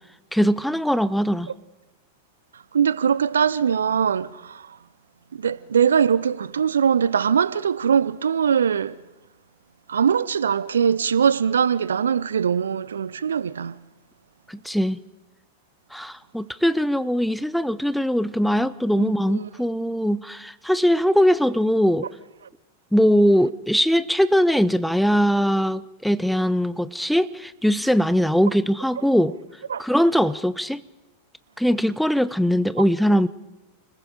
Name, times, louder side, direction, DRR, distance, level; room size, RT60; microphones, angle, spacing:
voice 1, 0.3-1.5 14.5-15.0 15.9-22.1 22.9-29.3 29.8-30.8 31.6-33.3, equal, ahead, 0.7 m, -21 dB
voice 2, 2.7-4.8 5.3-9.0 9.9-13.8 19.0-19.5 29.7-29.8, right 7 dB, 70° right, 0.6 m, -22 dB
29.5 x 20.5 x 5.1 m
figure-of-eight pair, 90°, 0 cm